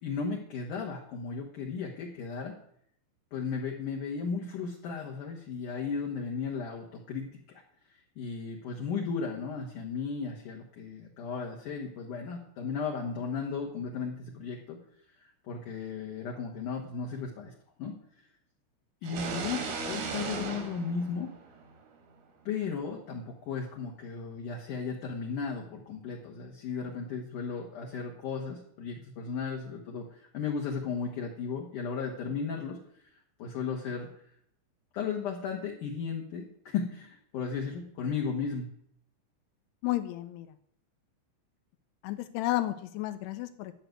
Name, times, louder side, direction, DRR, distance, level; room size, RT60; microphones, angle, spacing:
voice 1, 0.0-2.5 3.3-7.6 8.2-14.8 15.5-17.5 17.8-17.9 19.0-21.3 22.5-32.8 33.4-34.1 34.9-38.7, left 5 dB, 65° left, -1 dB, 2.2 m, -35 dB
sound 1, 19.0-21.8, right 4 dB, 85° right, 5.0 m, -36 dB
voice 2, 39.8-40.5 42.0-43.8, left 16 dB, 80° left, 11 dB, 2.5 m, -32 dB
12.0 x 6.3 x 9.3 m, 0.68 s
omnidirectional pair, 5.7 m